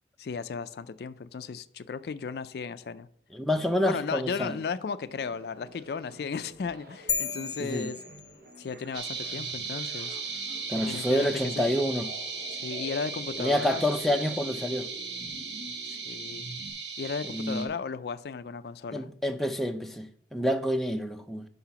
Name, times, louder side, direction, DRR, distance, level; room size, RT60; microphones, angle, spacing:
voice 1, 0.2-3.1 3.9-8.0 8.6-10.2 10.7-11.7 12.5-13.9 15.8-16.5 17.0-19.1, left 5 dB, 60° left, 0.4 m, -35 dB
voice 2, 3.3-4.5 7.6-7.9 10.7-12.1 13.4-14.9 17.3-17.7 18.9-21.5, equal, ahead, 0.5 m, -28 dB
sound 1, 5.1-16.7, right 1 dB, 55° right, 0.9 m, -47 dB
sound 2, 7.1-8.8, left 6 dB, 25° left, 1.0 m, -34 dB
sound 3, 8.9-17.7, right 4 dB, 75° right, 1.3 m, -37 dB
5.7 x 5.6 x 5.8 m
head